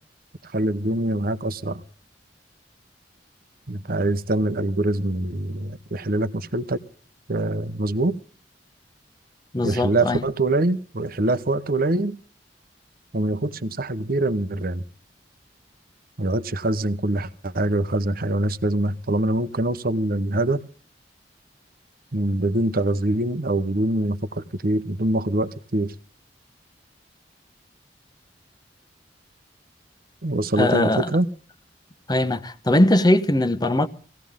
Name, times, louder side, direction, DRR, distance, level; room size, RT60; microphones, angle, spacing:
voice 1, 0.4-1.8 3.7-6.8 7.3-8.2 9.6-12.2 13.1-14.8 16.2-20.6 22.1-25.9 30.2-31.3, right 1 dB, 55° right, 1.1 m, -24 dB
voice 2, 9.5-10.2 30.6-31.1 32.1-33.9, left 1 dB, 25° left, 1.1 m, -20 dB
19.0 x 16.5 x 3.7 m
head